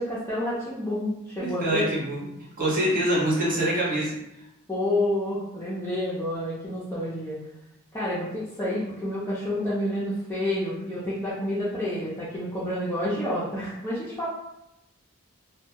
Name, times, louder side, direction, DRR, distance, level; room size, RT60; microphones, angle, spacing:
voice 1, 0.0-1.9 4.7-7.4 7.9-14.3, left 1 dB, 10° left, -11 dB, 0.5 m, -29 dB
voice 2, 1.4-2.2 2.6-4.1, right 1 dB, 40° right, -5 dB, 0.7 m, -24 dB
2.2 x 2.1 x 2.8 m, 0.86 s
head